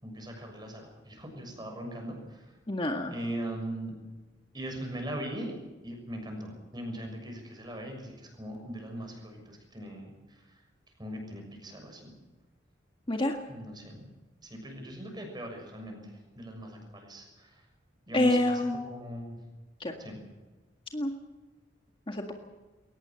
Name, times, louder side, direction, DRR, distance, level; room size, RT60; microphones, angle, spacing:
voice 1, 0.0-2.5 3.1-4.0 4.5-5.5 5.8-10.4 11.0-12.1 13.5-14.1 14.4-17.6 18.1-18.6 18.9-19.4 20.0-20.2, right 1 dB, 25° right, 3 dB, 6.6 m, -40 dB
voice 2, 2.7-3.2 13.1-13.4 18.1-18.8 19.8-19.9 20.9-21.1 22.1-22.3, left 1 dB, 30° left, 3 dB, 1.8 m, -27 dB
22.0 x 18.5 x 7.7 m, 1.2 s
head